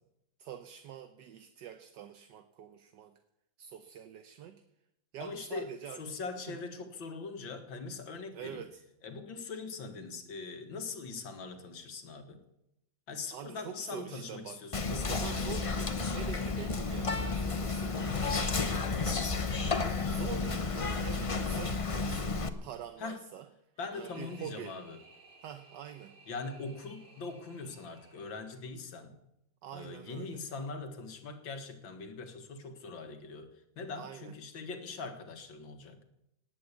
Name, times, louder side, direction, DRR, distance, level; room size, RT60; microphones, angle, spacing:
voice 1, 0.4-3.2 3.6-4.6 5.1-6.0 6.5-6.6 8.3-8.8 13.3-14.6 14.9-19.7 20.1-23.5 23.9-24.8 25.4-26.1 29.6-30.4 34.0-34.3, right 9 dB, 65° right, 9 dB, 1.4 m, -45 dB
voice 2, 5.2-5.7 6.0-8.6 9.0-12.4 13.1-15.7 23.0-23.2 23.8-25.0 26.3-29.1 29.7-36.0, left 4 dB, 75° left, 6 dB, 2.5 m, -42 dB
Whispering, 14.7-22.5, left 4 dB, 55° left, 0.3 m, -32 dB
sound 1, 23.7-28.9, right 2 dB, 50° right, 3.2 m, -59 dB
18.5 x 8.8 x 8.3 m, 0.83 s
omnidirectional pair, 2.1 m